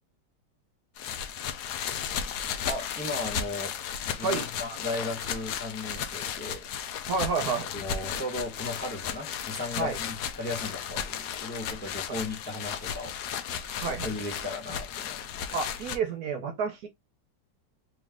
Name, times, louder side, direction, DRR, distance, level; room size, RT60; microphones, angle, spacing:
sound 1, 1.0-16.0, left 8 dB, 75° left, 1.1 m, -35 dB
voice 1, 2.7-6.7 7.7-15.3, left 2 dB, 5° left, 0.9 m, -36 dB
voice 2, 7.1-7.7 9.8-10.0 13.8-14.1 15.5-16.9, right 5 dB, 65° right, 1.1 m, -29 dB
3.2 x 3.1 x 3.6 m
omnidirectional pair, 1.9 m